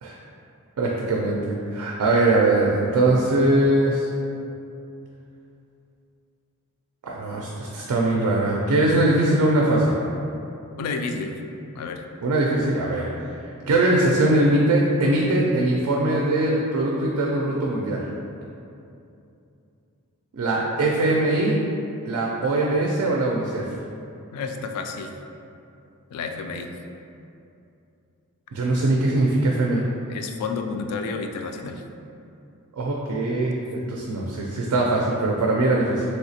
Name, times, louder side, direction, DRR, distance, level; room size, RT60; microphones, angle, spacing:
voice 1, 0.8-1.4 1.7-4.1 7.0-10.0 12.2-13.1 13.7-18.0 20.3-21.5 22.1-23.6 28.5-29.8 32.8-36.0, right 2 dB, 80° right, -2 dB, 0.4 m, -21 dB
voice 2, 10.8-11.4 11.7-12.0 20.6-20.7 24.3-25.1 26.1-26.7 30.1-31.8, left 4 dB, 85° left, 9 dB, 0.3 m, -31 dB
3.3 x 2.8 x 2.7 m, 2.7 s
head